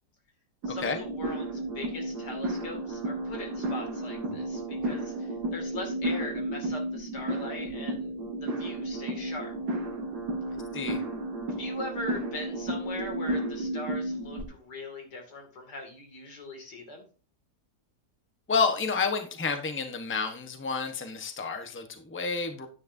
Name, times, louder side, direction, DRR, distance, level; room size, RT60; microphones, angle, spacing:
sound 1, 0.6-14.4, right 1 dB, 75° right, 2.5 m, -33 dB
voice 1, 0.7-9.5 11.5-17.0, left 2 dB, 90° left, 2 dB, 3.0 m, -40 dB
voice 2, 18.5-22.7, left 5 dB, 10° left, 6 dB, 0.9 m, -30 dB
10.0 x 9.8 x 2.7 m, 0.37 s
omnidirectional pair, 1.7 m